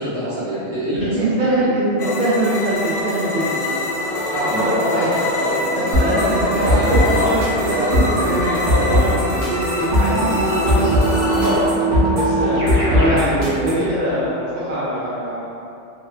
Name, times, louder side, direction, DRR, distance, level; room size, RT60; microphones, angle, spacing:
voice 1, 0.0-1.3 4.4-7.0, right 1 dB, 35° right, -14 dB, 1.4 m, -26 dB
voice 2, 0.9-3.6 4.3-5.1 5.8-11.6 12.1-15.4, right 1 dB, 60° right, -11 dB, 0.5 m, -22 dB
sound 1, 2.0-11.7, left 2 dB, 85° left, 0.9 m, -25 dB
sound 2, 5.9-13.9, equal, 80° right, 1.0 m, -20 dB
Keyboard (musical), 10.6-13.3, right 3 dB, 15° right, 0.6 m, -23 dB
2.7 x 2.1 x 2.3 m, 2.7 s
omnidirectional pair, 1.2 m